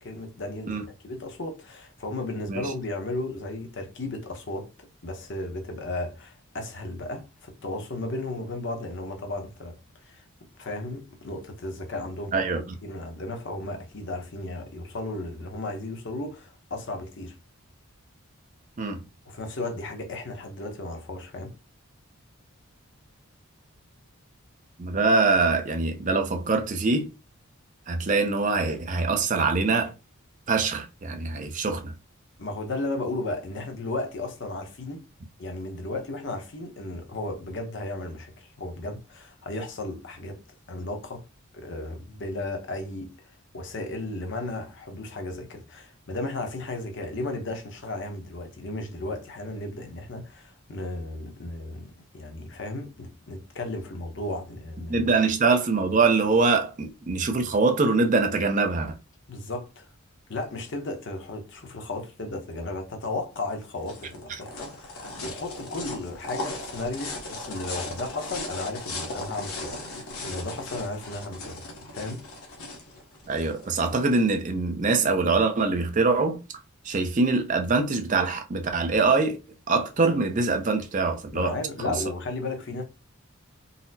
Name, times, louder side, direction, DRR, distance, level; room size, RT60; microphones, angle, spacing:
voice 1, 0.0-9.8 10.0-10.2 10.6-12.5 12.8-17.4 19.2-21.5 32.4-35.1 35.4-40.4 40.7-41.2 41.5-55.1 59.3-59.9 60.3-72.3 81.3-82.8, left 2 dB, 55° left, 0.7 m, -34 dB
voice 2, 24.8-27.1 27.9-29.9 30.5-31.9 54.9-58.9 73.3-76.4 76.8-79.4 79.7-81.6 81.9-82.0, right 3 dB, 35° right, 0.5 m, -23 dB
sound 1, 63.4-74.2, left 2 dB, 80° left, 0.9 m, -37 dB
3.9 x 2.0 x 2.6 m
head